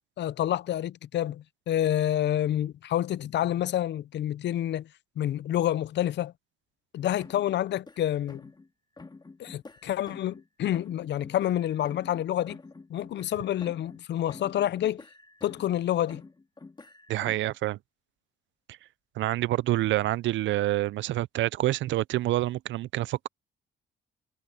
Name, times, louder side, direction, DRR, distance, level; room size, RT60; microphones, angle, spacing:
voice 1, 0.2-4.9 5.2-6.3 6.9-8.5 9.4-12.6 12.9-15.0 15.4-16.2, left 12 dB, 60° left, 0.6 m, -28 dB
sound 1, 7.2-8.7 9.0-10.5 10.7-14.0 14.3-15.8 16.1-17.6, left 3 dB, 20° left, 2.3 m, -48 dB
voice 2, 17.1-17.8 19.2-23.3, right 15 dB, 70° right, 0.4 m, -27 dB
cardioid pair, 90°, 20 cm